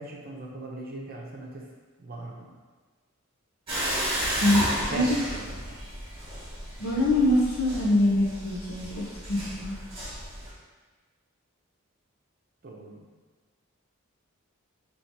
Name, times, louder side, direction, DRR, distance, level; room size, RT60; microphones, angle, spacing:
voice 1, 0.0-1.7 2.0-2.5 4.5-5.9 12.6-13.1, right 1 dB, 45° right, -1 dB, 0.7 m, -40 dB
sound 1, 3.7-10.5, right 1 dB, 25° right, 1.3 m, -33 dB
voice 2, 4.4-5.2 6.8-9.8, left 1 dB, 75° left, -5 dB, 0.7 m, -24 dB
3.0 x 2.9 x 4.4 m, 1.4 s
head